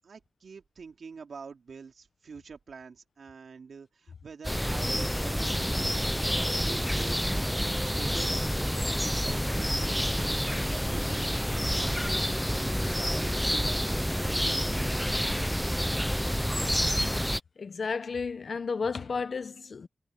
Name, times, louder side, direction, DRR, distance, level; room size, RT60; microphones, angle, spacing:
voice 1, 0.0-6.1 6.6-8.4 8.9-10.4 10.7-11.3 11.6-12.1 12.5-14.9, right 5 dB, 80° right, 3.2 m, -46 dB
sound 1, 4.4-17.4, equal, ahead, 0.9 m, -28 dB
voice 2, 17.6-19.9, left 5 dB, 65° left, 1.0 m, -32 dB
wide cardioid pair, 85°, 0 cm